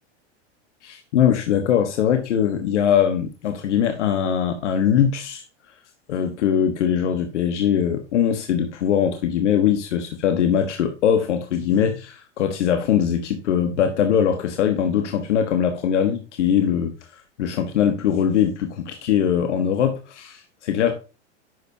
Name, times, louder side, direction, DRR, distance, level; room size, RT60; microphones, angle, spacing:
voice 1, 0.8-5.4 6.1-16.9 17.4-21.0, left 8 dB, 80° left, 6 dB, 1.3 m, -21 dB
11.0 x 6.5 x 2.8 m, 0.32 s
hypercardioid pair, 115°, 35 cm